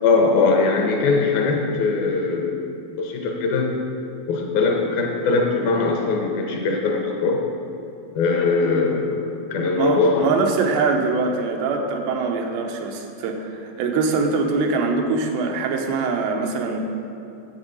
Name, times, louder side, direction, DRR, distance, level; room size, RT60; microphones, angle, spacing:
voice 1, 0.0-2.7 3.0-3.7 4.3-7.4 8.2-10.4, left 4 dB, 75° left, 1 dB, 2.5 m, -21 dB
voice 2, 9.8-16.8, right 4 dB, 85° right, 3 dB, 3.0 m, -23 dB
9.9 x 8.2 x 5.4 m, 2.6 s
omnidirectional pair, 4.7 m